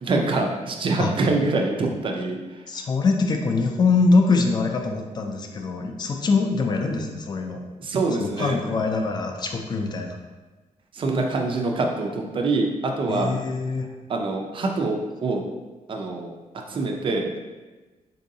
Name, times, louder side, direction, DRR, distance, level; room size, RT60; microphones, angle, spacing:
voice 1, 0.0-2.4 7.8-8.6 11.0-13.3 14.1-15.4 15.9-16.3 16.5-17.4, right 3 dB, 40° right, 2 dB, 0.4 m, -25 dB
voice 2, 2.7-7.6 8.2-10.2 13.1-13.9, left 3 dB, 30° left, 3 dB, 0.3 m, -23 dB
3.8 x 2.6 x 2.6 m, 1.2 s
wide cardioid pair, 170°, 13 cm